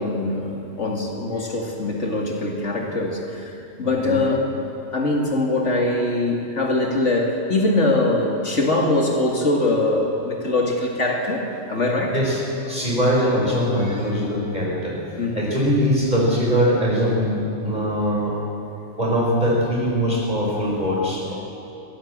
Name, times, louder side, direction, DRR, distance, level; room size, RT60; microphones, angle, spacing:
voice 1, 0.0-4.4 4.9-12.2 15.2-15.5, left 2 dB, 65° left, 1 dB, 2.6 m, -22 dB
voice 2, 12.1-18.4 19.0-21.3, equal, 35° right, -3 dB, 5.4 m, -22 dB
22.0 x 17.0 x 7.6 m, 2.8 s
omnidirectional pair, 1.3 m